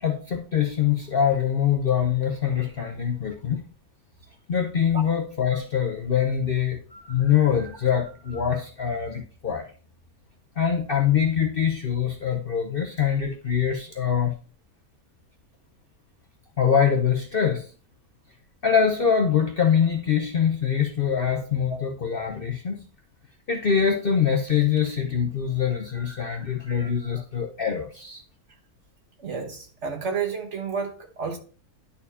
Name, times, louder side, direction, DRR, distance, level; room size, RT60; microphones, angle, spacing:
voice 1, 0.0-3.6 4.5-9.7 10.6-14.3 16.6-17.7 18.6-22.8 23.5-28.2, left 8 dB, 50° left, 0.7 m, -24 dB
voice 2, 29.2-31.4, right 5 dB, 50° right, 1.4 m, -31 dB
11.0 x 4.4 x 2.8 m
omnidirectional pair, 1.7 m